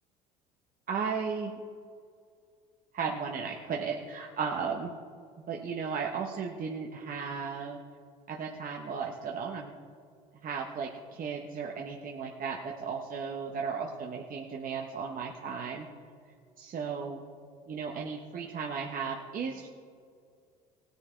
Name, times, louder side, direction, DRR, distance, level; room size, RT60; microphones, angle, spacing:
voice 1, 0.9-1.5 2.9-4.9 5.5-7.8 8.3-9.8 10.4-15.9 16.6-17.2 17.7-19.7, right 5 dB, 45° right, 0 dB, 1.2 m, -35 dB
18.5 x 7.1 x 4.6 m, 2.2 s
hypercardioid pair, 70°, 21 cm